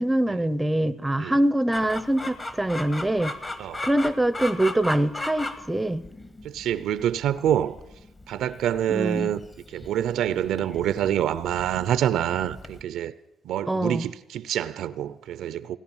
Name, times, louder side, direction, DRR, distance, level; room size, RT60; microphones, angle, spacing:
voice 1, 0.0-3.3 3.8-6.0 8.9-9.3 13.7-14.1, right 1 dB, 10° right, 0.7 m, -24 dB
Chicken rooster, 1.7-12.8, left 2 dB, 25° left, 1.5 m, -37 dB
voice 2, 6.4-7.8 8.3-9.4 9.7-13.1 13.4-15.8, right 10 dB, 80° right, 0.6 m, -26 dB
17.0 x 10.0 x 7.2 m
cardioid pair, 90°, 0 cm